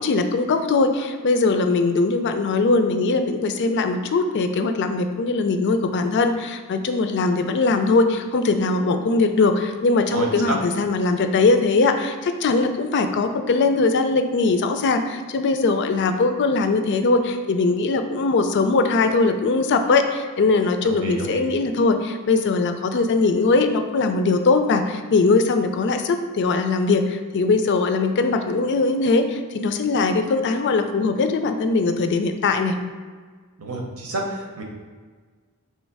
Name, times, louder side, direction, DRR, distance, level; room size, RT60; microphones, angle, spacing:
voice 1, 0.0-32.8, left 3 dB, 55° left, 7 dB, 0.4 m, -21 dB
voice 2, 10.1-10.6 20.8-21.4 33.6-34.6, right 2 dB, 80° right, 1 dB, 0.8 m, -29 dB
3.3 x 3.1 x 4.6 m, 1.5 s
head